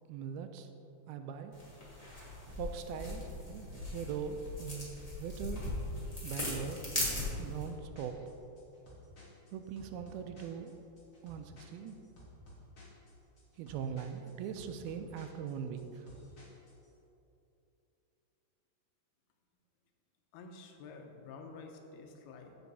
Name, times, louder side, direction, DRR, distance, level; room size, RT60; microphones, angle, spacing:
voice 1, 0.1-0.7 1.1-1.5 2.5-4.9 5.2-5.6 6.2-6.8 7.4-8.1 9.5-10.8 11.2-12.0 13.6-16.1, right 7 dB, 85° right, 7 dB, 2.5 m, -41 dB
sound 1, 1.5-7.6, left 1 dB, 15° left, 1.4 m, -39 dB
sound 2, 7.4-16.9, left 1 dB, 30° left, 1.5 m, -56 dB
voice 2, 20.3-22.5, left 4 dB, 90° left, 3 dB, 2.9 m, -50 dB
15.5 x 5.7 x 4.1 m, 2.9 s
omnidirectional pair, 4.4 m